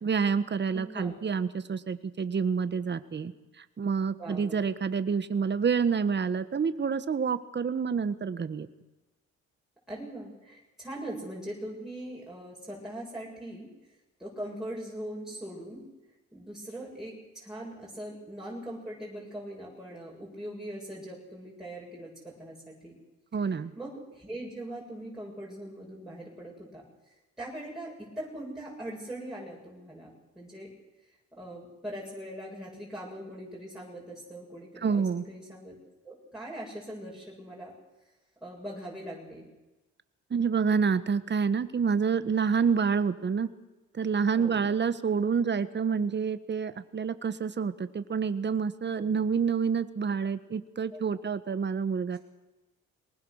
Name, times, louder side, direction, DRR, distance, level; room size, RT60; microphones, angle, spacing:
voice 1, 0.0-3.3 3.6-8.7 23.3-23.7 34.8-35.2 40.3-43.5 43.9-52.2, right 6 dB, 35° right, 12 dB, 1.4 m, -28 dB
voice 2, 0.7-1.2 4.2-4.7 7.9-8.0 9.9-13.7 14.2-15.8 16.3-22.9 23.4-30.1 30.3-30.7 31.1-35.7 36.0-37.7 38.4-39.5 44.4-44.6 49.0-49.1 50.9-51.0, right 1 dB, ahead, -5 dB, 7.5 m, -41 dB
23.0 x 20.0 x 6.6 m, 1.1 s
cardioid pair, 90°, 30 cm